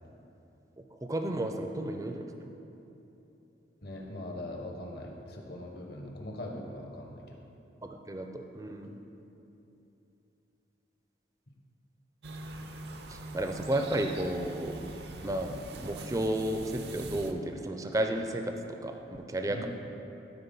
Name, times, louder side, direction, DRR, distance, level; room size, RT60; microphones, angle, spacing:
voice 1, 1.0-2.3 7.8-9.0 13.1-14.7 15.2-18.5 18.8-19.0 19.3-19.7, right 1 dB, 20° right, 5 dB, 0.5 m, -32 dB
voice 2, 3.8-7.4 8.8-8.9 19.5-19.7, left 1 dB, 55° left, 1 dB, 1.1 m, -41 dB
sound 1, 12.2-17.3, right 2 dB, 65° right, 0.6 m, -42 dB
12.5 x 4.2 x 5.4 m, 3.0 s
head